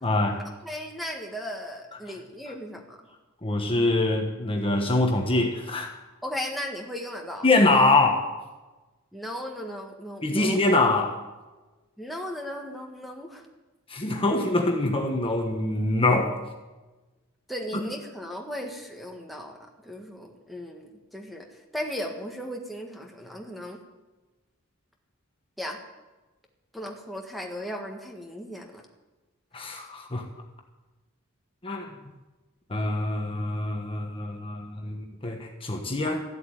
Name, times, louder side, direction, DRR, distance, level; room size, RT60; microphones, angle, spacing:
voice 1, 0.0-0.5 3.4-5.9 7.4-8.4 10.2-11.2 13.9-16.4 29.5-30.2 31.6-31.9 32.7-36.2, left 2 dB, 25° left, 3 dB, 1.3 m, -24 dB
voice 2, 0.6-3.0 6.2-7.4 9.1-10.6 12.0-13.5 17.5-19.6 19.8-21.5 21.7-23.8 25.6-25.8 26.7-28.8, equal, ahead, 2 dB, 1.6 m, -36 dB
13.5 x 7.8 x 9.1 m, 1.2 s
head